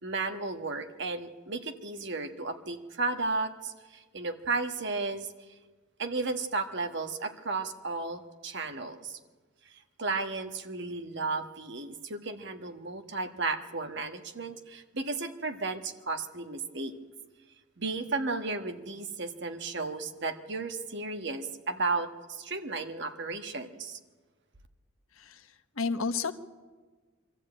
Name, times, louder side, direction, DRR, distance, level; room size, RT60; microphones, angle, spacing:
voice 1, 0.0-5.3 6.0-9.2 9.7-16.9 17.8-24.0, right 3 dB, 55° right, 7 dB, 1.4 m, -34 dB
voice 2, 25.8-26.3, left 4 dB, 75° left, 9 dB, 1.1 m, -31 dB
23.5 x 13.5 x 8.8 m, 1.4 s
head